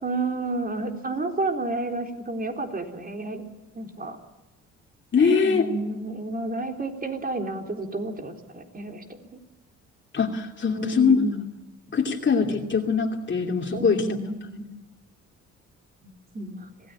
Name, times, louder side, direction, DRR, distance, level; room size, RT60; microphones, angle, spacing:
voice 1, 0.0-3.4 3.7-4.2 5.4-9.2 10.7-11.5 13.7-14.8 16.0-16.7, right 2 dB, 30° right, 3 dB, 4.0 m, -31 dB
voice 2, 5.1-5.7 10.1-11.2 11.9-14.0, left 5 dB, 40° left, 1 dB, 2.7 m, -22 dB
26.0 x 18.0 x 8.8 m, 1.0 s
cardioid pair, 90°, 30 cm